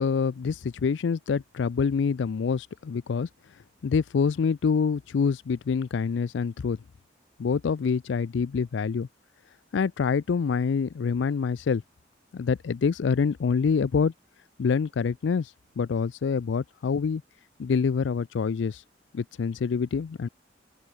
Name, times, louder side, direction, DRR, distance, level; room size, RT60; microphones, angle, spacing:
voice 1, 0.0-3.3 3.8-6.8 7.4-9.1 9.7-11.8 12.3-14.1 14.6-17.2 17.6-18.8 19.1-20.3, left 5 dB, 70° left, 0.4 m, -26 dB
open air
head